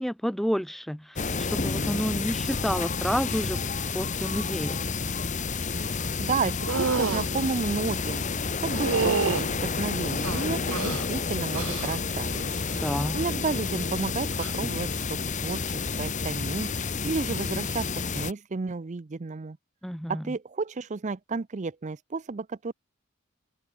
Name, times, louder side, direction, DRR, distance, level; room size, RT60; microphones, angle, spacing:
voice 1, 0.0-3.6 3.9-4.8 12.7-13.2 19.8-20.3, equal, ahead, 1.3 m, -30 dB
sound 1, 1.2-18.3, left 4 dB, 35° left, 1.1 m, -30 dB
voice 2, 6.2-8.2 8.6-12.4 13.1-19.6 20.1-22.7, right 4 dB, 35° right, 0.5 m, -32 dB
sound 2, 6.7-7.3 8.7-9.5 10.2-11.1 11.5-12.0 12.3-12.8 14.3-14.5, right 4 dB, 70° right, 0.8 m, -28 dB
head